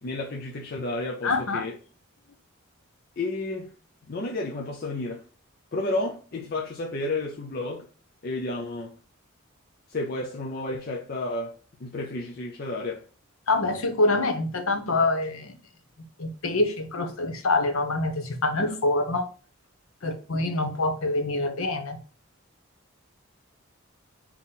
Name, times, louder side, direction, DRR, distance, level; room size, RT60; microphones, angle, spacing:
voice 1, 0.0-1.8 3.2-3.7 4.1-5.3 5.7-7.9 8.2-8.9 9.9-13.1, left 2 dB, 45° left, 0.5 m, -31 dB
voice 2, 1.2-1.6 13.5-15.5 16.2-19.3 20.0-22.0, left 2 dB, 80° left, 0.8 m, -25 dB
3.8 x 2.9 x 3.9 m
head